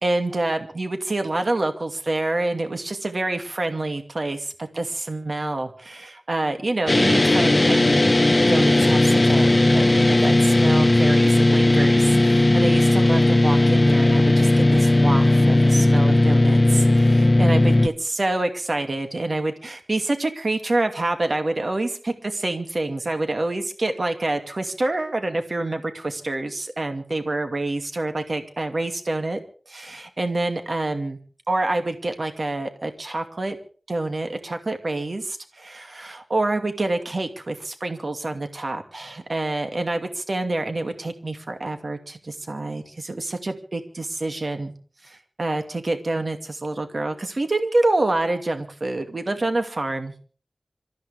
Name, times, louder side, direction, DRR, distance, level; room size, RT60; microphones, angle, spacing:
voice 1, 0.0-8.0 8.5-29.4 29.7-31.2 31.5-33.6 33.9-44.7 45.0-50.1, right 2 dB, 60° right, 6 dB, 2.4 m, -27 dB
sound 1, 6.9-17.9, left 1 dB, 35° left, 1.0 m, -17 dB
27.0 x 14.0 x 3.5 m, 0.42 s
wide cardioid pair, 60°, 0 cm